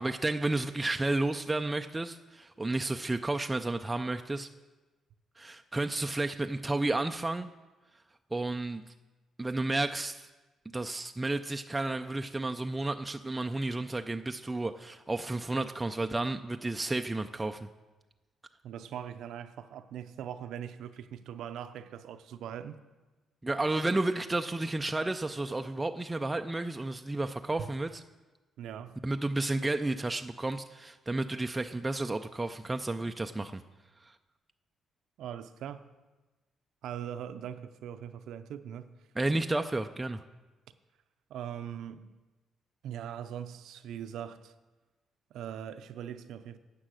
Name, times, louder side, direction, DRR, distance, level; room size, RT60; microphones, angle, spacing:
voice 1, 0.0-4.5 5.4-7.5 8.3-8.8 9.4-10.3 10.7-17.7 23.4-28.0 29.0-33.6 34.1-34.2 39.2-40.2, right 2 dB, 15° right, 0.4 m, -32 dB
voice 2, 18.6-22.8 28.6-29.0 35.2-35.9 36.8-38.9 41.3-42.1 42.8-44.5 45.3-46.6, right 9 dB, 80° right, 0.6 m, -41 dB
10.0 x 7.5 x 6.2 m
cardioid pair, 90°, 0 cm